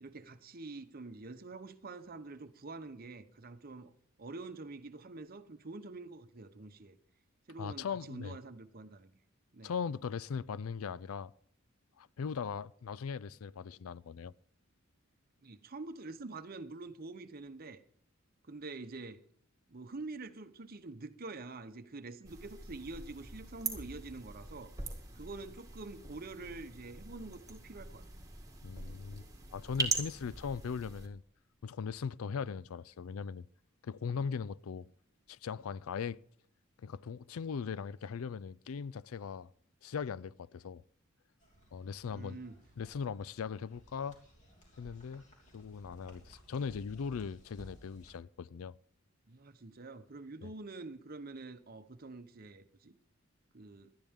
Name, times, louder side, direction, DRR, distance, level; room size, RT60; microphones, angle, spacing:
voice 1, 0.0-3.9 4.2-7.0 7.5-9.1 9.5-9.7 15.4-17.8 18.4-19.2 19.7-24.7 25.1-28.0 42.1-42.5 49.3-52.9 53.5-53.9, right 3 dB, 45° right, 0.9 m, -46 dB
voice 2, 7.6-8.4 9.6-11.3 12.0-14.3 28.6-29.2 29.5-31.2 31.6-33.5 33.8-34.9 35.3-36.2 36.8-39.5 39.8-40.8 41.7-42.4 42.8-44.2 44.8-45.2 45.5-48.8 50.4-50.5, left 6 dB, 85° left, 0.4 m, -39 dB
sound 1, 22.2-31.1, right 3 dB, 15° right, 2.2 m, -42 dB
sound 2, 41.4-48.1, right 1 dB, 35° left, 3.3 m, -58 dB
19.0 x 12.0 x 3.6 m
head